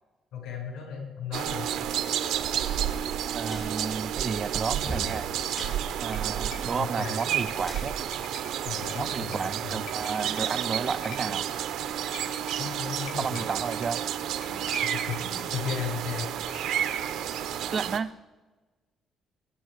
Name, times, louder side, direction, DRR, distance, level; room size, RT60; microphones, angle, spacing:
voice 1, 0.3-1.7 6.8-7.2 8.6-9.8 12.6-13.4 14.5-16.3, left 7 dB, 90° left, 1 dB, 5.9 m, -35 dB
sound 1, 1.3-18.0, right 10 dB, 85° right, 1.0 m, -31 dB
sound 2, 3.2-9.1, right 1 dB, 20° left, 4.2 m, -43 dB
voice 2, 3.3-5.3 6.0-7.9 9.0-11.5 13.2-14.0 17.7-18.1, right 5 dB, 30° right, 13 dB, 0.4 m, -32 dB
sound 3, 6.1-16.9, left 7 dB, 60° left, 1.4 m, -49 dB
20.5 x 10.0 x 4.9 m, 1.2 s
cardioid pair, 175°, 0 cm